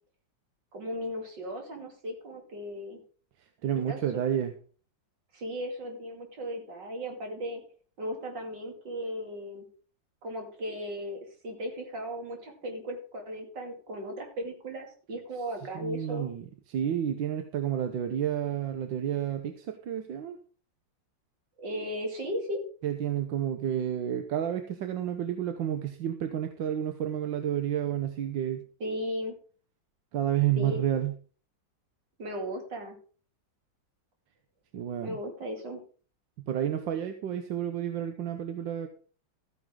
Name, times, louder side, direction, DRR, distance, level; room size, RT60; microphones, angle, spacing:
voice 1, 0.7-3.0 3.9-4.2 5.3-7.6 8.0-9.6 10.2-16.3 21.6-22.6 28.8-29.3 30.6-30.8 32.2-33.0 35.0-35.8, equal, 70° right, 3 dB, 3.3 m, -36 dB
voice 2, 3.6-4.5 15.7-20.4 22.8-28.6 30.1-31.1 34.7-35.2 36.5-38.9, right 10 dB, 90° right, 7 dB, 1.7 m, -30 dB
14.0 x 9.3 x 3.8 m, 0.40 s
omnidirectional pair, 2.0 m